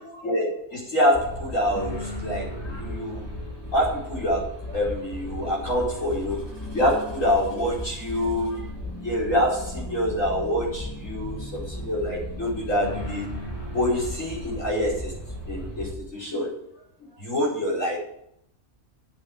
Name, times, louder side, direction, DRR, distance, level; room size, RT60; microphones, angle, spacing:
voice 1, 0.0-3.2 3.7-8.7 9.0-13.3 13.7-15.1 15.5-16.6 17.2-18.0, equal, 70° left, -4 dB, 5.4 m, -26 dB
sound 1, 1.1-15.9, left 1 dB, 20° left, 2.8 m, -35 dB
8.7 x 8.1 x 9.0 m, 0.75 s
omnidirectional pair, 1.4 m